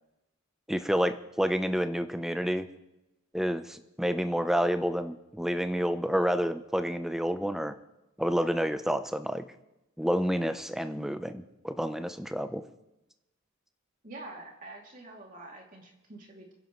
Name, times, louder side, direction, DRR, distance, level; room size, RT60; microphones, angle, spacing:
voice 1, 0.7-2.7 3.3-7.7 8.2-9.4 10.0-12.6, equal, ahead, 9 dB, 0.6 m, -29 dB
voice 2, 14.0-16.5, right 2 dB, 40° right, 0 dB, 2.7 m, -46 dB
29.5 x 11.0 x 3.1 m, 0.95 s
head